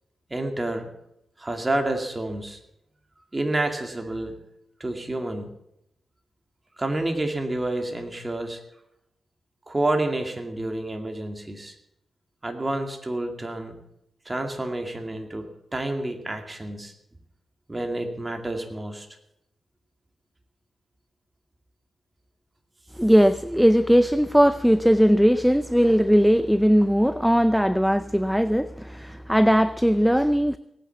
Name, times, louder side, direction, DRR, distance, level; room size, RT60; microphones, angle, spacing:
voice 1, 0.3-0.9 1.4-2.6 3.3-4.3 4.8-5.5 6.8-8.6 9.7-11.8 12.4-13.7 14.3-16.9 17.7-19.1, right 2 dB, 20° right, 2.4 m, -29 dB
voice 2, 23.0-30.6, equal, ahead, 0.5 m, -19 dB
18.0 x 9.1 x 7.2 m
cardioid pair, 95°, 0 cm